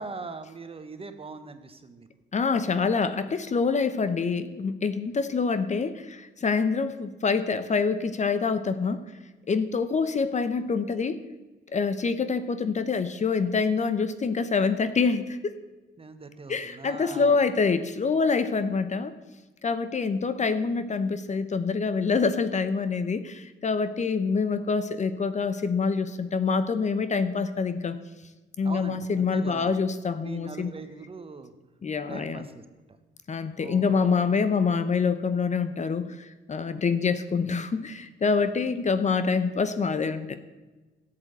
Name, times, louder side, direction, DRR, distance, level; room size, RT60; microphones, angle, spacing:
voice 1, 0.0-2.1 16.0-17.4 28.6-29.7 30.2-31.5 32.1-32.6 33.6-34.3, right 4 dB, 30° right, 9 dB, 1.2 m, -41 dB
voice 2, 2.3-9.0 9.5-11.2 11.7-15.5 16.5-19.1 19.6-28.0 28.6-30.7 31.8-32.4 33.3-40.4, left 5 dB, 35° left, 12 dB, 0.8 m, -26 dB
11.5 x 7.7 x 8.0 m, 1.2 s
cardioid pair, 90°, 20 cm